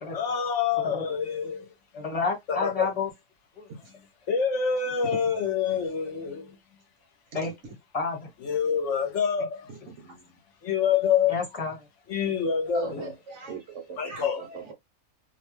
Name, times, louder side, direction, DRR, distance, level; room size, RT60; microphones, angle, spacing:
voice 1, 0.1-1.7 2.5-2.9 3.9-6.6 8.4-9.7 10.6-11.4 12.1-13.1 14.0-14.5, left 7 dB, 65° left, 0.9 m, -27 dB
voice 2, 1.9-3.1 3.6-3.7 7.3-8.3 11.3-11.8, left 4 dB, 30° left, 1.1 m, -30 dB
voice 3, 12.7-14.7, right 4 dB, 60° right, 1.0 m, -40 dB
2.6 x 2.1 x 3.0 m
omnidirectional pair, 1.5 m